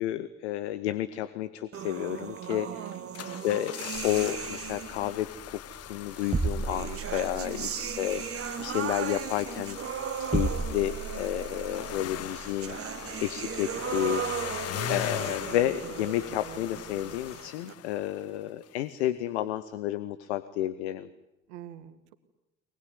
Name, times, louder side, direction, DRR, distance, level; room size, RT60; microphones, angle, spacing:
voice 1, 0.0-2.7 3.4-3.7 4.0-9.8 10.2-21.1, left 13 dB, 75° left, 13 dB, 1.0 m, -31 dB
sound 1, 1.7-5.2 6.2-17.7, right 8 dB, 40° right, 1.4 m, -37 dB
voice 2, 2.5-3.4 7.4-7.8 15.0-15.4 21.5-22.1, right 13 dB, 75° right, 10 dB, 1.9 m, -44 dB
sound 2, 2.9-18.4 18.6-18.7, left 12 dB, 45° left, 0.9 m, -40 dB
sound 3, 3.9-17.3, right 4 dB, 20° right, 1.3 m, -38 dB
23.5 x 20.0 x 9.5 m, 0.93 s
figure-of-eight pair, 55°, 34 cm